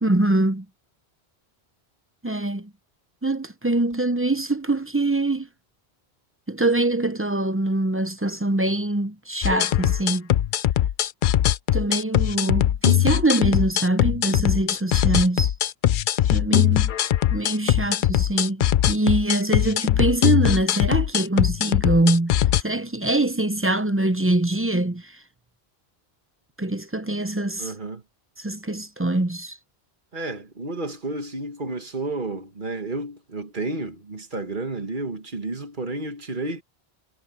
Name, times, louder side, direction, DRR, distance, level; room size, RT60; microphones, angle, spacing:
voice 1, 0.0-0.6 2.2-2.7 3.2-5.5 6.5-10.3 11.7-15.5 16.3-16.9 17.3-25.1 26.6-27.7 28.4-29.6, right 2 dB, 15° right, 0.5 m, -23 dB
sound 1, 9.4-22.6, left 11 dB, 60° left, 0.6 m, -21 dB
voice 2, 27.6-28.0 30.1-36.6, right 2 dB, 50° right, 1.8 m, -31 dB
omnidirectional pair, 1.1 m